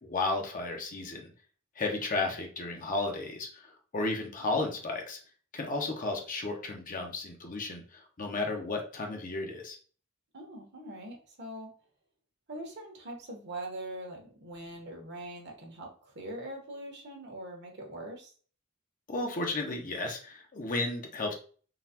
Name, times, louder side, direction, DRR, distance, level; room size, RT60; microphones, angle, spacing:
voice 1, 0.0-1.3 1.8-5.2 5.5-9.8 19.1-21.3, left 2 dB, 40° left, 2 dB, 0.8 m, -33 dB
voice 2, 4.4-4.8 10.3-11.7 12.5-18.3, right 1 dB, 55° right, 1 dB, 1.2 m, -42 dB
4.0 x 3.1 x 2.8 m, 0.42 s
head